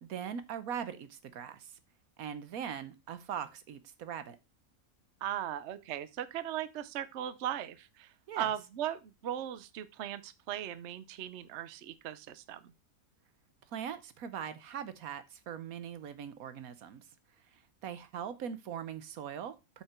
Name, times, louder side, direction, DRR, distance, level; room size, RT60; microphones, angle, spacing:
voice 1, 0.0-1.7 2.2-4.4 8.3-8.5 13.7-17.0 17.8-19.8, right 8 dB, 75° right, 1.3 m, -41 dB
voice 2, 5.2-8.1 8.4-12.6, right 11 dB, 60° right, 0.9 m, -38 dB
8.3 x 5.9 x 4.3 m
omnidirectional pair, 1.5 m